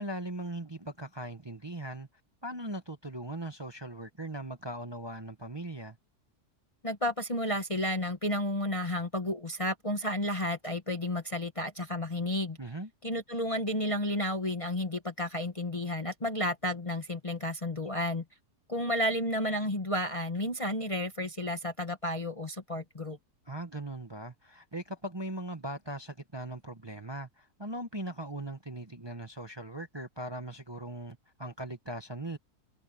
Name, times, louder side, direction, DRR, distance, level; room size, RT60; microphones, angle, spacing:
voice 1, 0.0-2.1 2.4-6.0 12.6-12.9 23.5-32.4, right 1 dB, 20° right, 1.0 m, -39 dB
voice 2, 6.8-12.6 13.0-18.2 18.7-23.2, left 1 dB, 25° left, 1.0 m, -32 dB
omnidirectional pair, 1.7 m